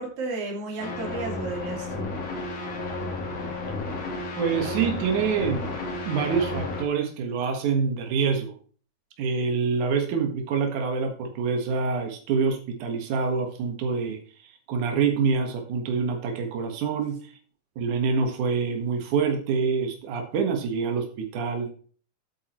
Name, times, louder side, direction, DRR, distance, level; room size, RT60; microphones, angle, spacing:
voice 1, 0.0-2.1, right 2 dB, 55° right, -1 dB, 3.5 m, -33 dB
sound 1, 0.8-6.8, left 2 dB, 55° left, 3.5 m, -32 dB
voice 2, 4.4-5.7 6.1-8.5 9.2-17.3 17.8-21.7, right 5 dB, 80° right, 3 dB, 3.0 m, -26 dB
11.0 x 8.4 x 3.0 m, 0.43 s
omnidirectional pair, 3.4 m